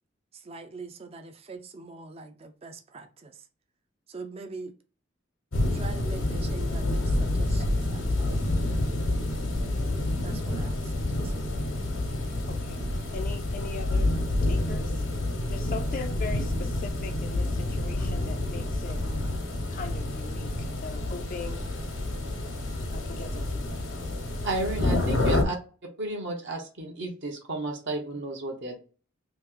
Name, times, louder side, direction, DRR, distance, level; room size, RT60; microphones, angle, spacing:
voice 1, 0.3-3.5 4.1-4.8 5.7-8.9 10.2-11.3, right 3 dB, 30° right, 0.4 m, -43 dB
sound 1, 5.5-25.4, left 1 dB, 85° left, 1.0 m, -28 dB
voice 2, 12.5-12.8 13.1-14.1 14.4-15.0 15.5-19.0 19.7-21.6 22.9-24.1, left 4 dB, 40° left, 0.4 m, -40 dB
voice 3, 24.4-25.6 26.0-28.8, right 2 dB, 60° right, 0.8 m, -32 dB
3.0 x 2.8 x 3.7 m
head